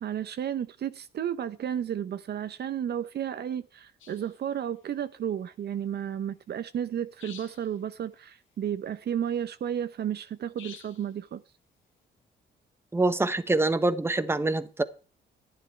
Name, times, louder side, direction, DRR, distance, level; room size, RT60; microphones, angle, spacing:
voice 1, 0.0-11.4, right 9 dB, 55° right, 0.7 m, -32 dB
sound 1, 4.0-4.4 7.2-7.8 10.6-11.1, left 8 dB, 80° left, 2.0 m, -48 dB
voice 2, 12.9-14.8, right 2 dB, 10° right, 1.0 m, -25 dB
11.0 x 10.0 x 4.5 m
cardioid pair, 90°, 20 cm